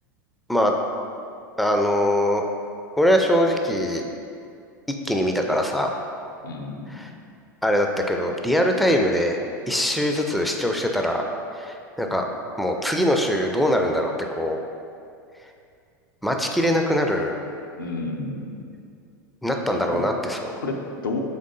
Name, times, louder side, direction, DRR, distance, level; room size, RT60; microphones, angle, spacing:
voice 1, 1.6-2.4 3.0-4.0 5.0-6.0 6.9-7.1 7.6-9.4 9.7-11.2 11.6-12.2 12.6-14.6 16.2-17.4 19.4-20.5, equal, ahead, 2 dB, 0.3 m, -22 dB
voice 2, 6.4-7.1 17.8-18.6 19.7-20.0 20.6-21.2, left 3 dB, 90° left, 1 dB, 0.5 m, -31 dB
3.8 x 3.6 x 3.7 m, 2.4 s
hypercardioid pair, 100°, 11 cm